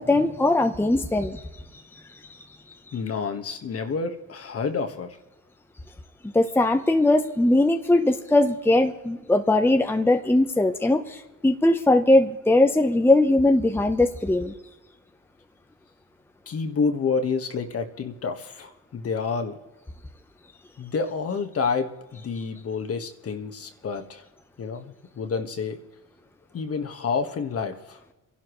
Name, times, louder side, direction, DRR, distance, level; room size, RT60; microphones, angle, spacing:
voice 1, 0.0-1.4 6.3-14.5, left 2 dB, 5° left, 6 dB, 0.9 m, -20 dB
voice 2, 2.9-5.2 16.5-19.6 20.8-24.2 24.6-25.8 26.5-28.0, left 5 dB, 50° left, 7 dB, 1.6 m, -29 dB
27.5 x 11.5 x 3.2 m, 1.1 s
cardioid pair, 90°, 30 cm